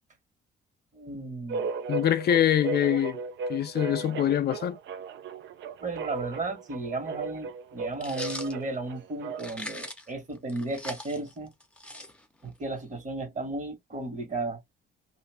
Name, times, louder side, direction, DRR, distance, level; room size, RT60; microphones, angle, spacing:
voice 1, 0.9-1.7 5.8-11.5 12.4-14.6, right 2 dB, 40° right, 1.3 m, -34 dB
sound 1, 1.5-9.7, right 4 dB, 65° right, 0.5 m, -36 dB
voice 2, 1.9-3.2 3.5-4.8, left 10 dB, 55° left, 0.4 m, -24 dB
sound 2, 8.0-8.5 9.4-10.1 10.5-12.5, left 1 dB, 5° left, 0.6 m, -40 dB
2.4 x 2.2 x 3.3 m
cardioid pair, 90°, 20 cm